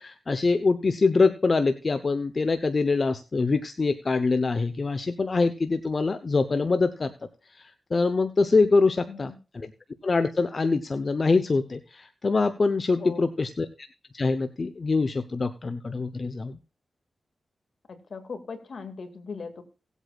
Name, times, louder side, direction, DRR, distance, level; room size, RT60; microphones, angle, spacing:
voice 1, 0.0-7.1 7.6-9.7 10.0-13.9 14.1-16.6, left 3 dB, 50° left, 10 dB, 0.8 m, -24 dB
voice 2, 17.9-19.6, left 5 dB, 65° left, 8 dB, 2.0 m, -39 dB
18.5 x 8.2 x 2.4 m, 0.33 s
cardioid pair, 60°, 0 cm